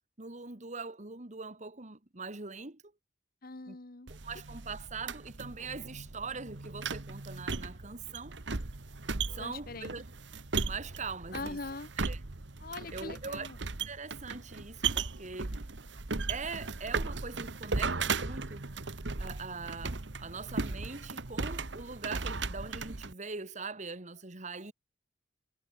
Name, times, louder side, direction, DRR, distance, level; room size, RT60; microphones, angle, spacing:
voice 1, 0.2-2.8 3.7-3.8 4.1-8.4 9.3-10.0 10.6-11.6 12.0-12.2 12.9-15.5 16.3-18.6 19.2-24.7, right 4 dB, 40° right, 2.0 m, -42 dB
voice 2, 3.4-4.1 9.4-9.9 11.3-11.9 12.6-13.6, left 3 dB, 55° left, 1.2 m, -42 dB
sound 1, 4.1-23.1, right 4 dB, 75° right, 1.4 m, -37 dB
head